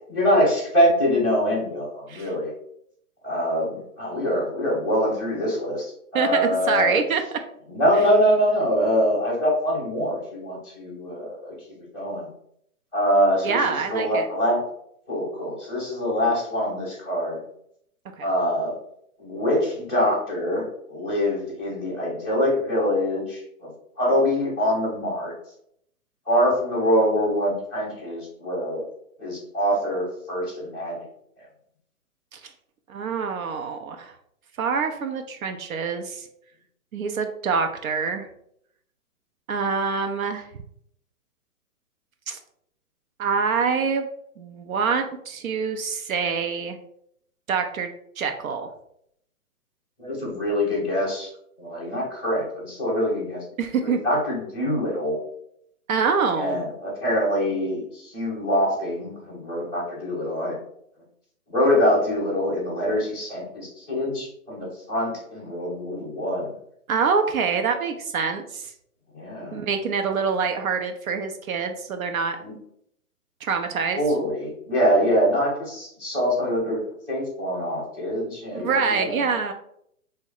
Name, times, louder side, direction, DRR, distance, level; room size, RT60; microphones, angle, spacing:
voice 1, 0.1-2.5 3.2-5.8 6.1-7.0 7.7-11.5 11.9-12.3 12.9-14.6 15.1-17.4 18.2-18.8 19.2-23.7 24.0-25.3 26.3-28.9 29.2-31.1 50.0-51.3 51.6-53.4 53.8-55.2 56.3-60.6 61.5-66.5 69.1-69.6 72.4-72.5 73.9-76.8 77.1-79.2, equal, ahead, -12 dB, 0.4 m, -24 dB
voice 2, 6.1-7.2 13.4-14.3 18.2-18.3 32.3-32.4 32.9-34.1 34.6-36.3 36.9-38.3 39.5-40.5 42.3-42.4 43.2-44.1 44.4-46.8 47.5-47.9 48.2-48.7 53.6-54.0 55.9-56.6 66.9-68.6 69.5-72.4 73.4-74.0 78.5-79.5, right 5 dB, 65° right, 6 dB, 0.5 m, -25 dB
3.1 x 2.0 x 3.8 m, 0.70 s
hypercardioid pair, 130°, 45 cm